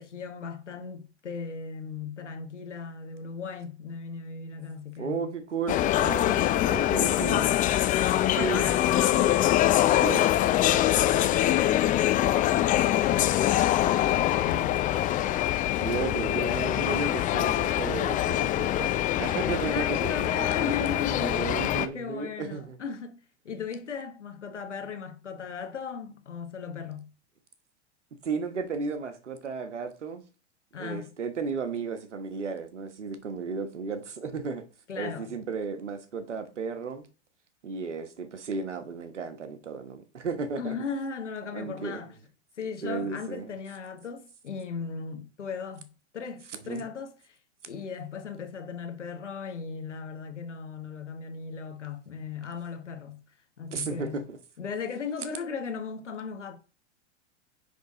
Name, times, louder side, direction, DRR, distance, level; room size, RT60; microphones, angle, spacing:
voice 1, 0.0-5.3 6.2-7.2 8.3-9.4 10.9-15.1 19.7-21.5 21.9-27.1 30.7-31.1 34.9-35.4 40.6-42.2 42.6-45.9 46.1-47.4 47.7-53.2 53.6-54.2 54.6-56.6, left 5 dB, 90° left, 1.3 m, -37 dB
voice 2, 5.0-6.3 6.7-7.5 8.4-8.6 9.9-10.2 15.8-20.1 21.2-22.8 28.2-30.2 30.8-34.6 35.0-37.1 37.6-40.7 41.5-42.0 42.8-43.5 46.5-46.9 53.7-54.4, right 5 dB, 85° right, 1.3 m, -34 dB
sound 1, 5.7-21.9, left 13 dB, 25° left, 0.5 m, -24 dB
9.4 x 3.7 x 3.8 m
hypercardioid pair, 105°, 35 cm